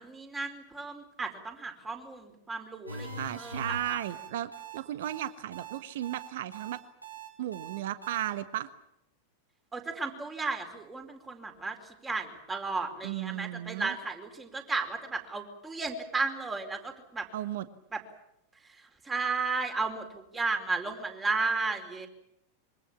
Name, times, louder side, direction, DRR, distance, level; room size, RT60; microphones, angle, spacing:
voice 1, 0.0-4.0 9.7-17.3 17.9-18.0 18.6-22.1, right 3 dB, 15° right, 5 dB, 4.6 m, -34 dB
sound 1, 2.9-8.3, right 3 dB, 85° right, 5.2 m, -42 dB
voice 2, 3.2-6.8 7.4-8.7 13.0-13.9 17.3-17.6, right 12 dB, 55° right, 13 dB, 1.4 m, -35 dB
25.5 x 24.0 x 7.4 m, 0.80 s
figure-of-eight pair, 90°, 0 cm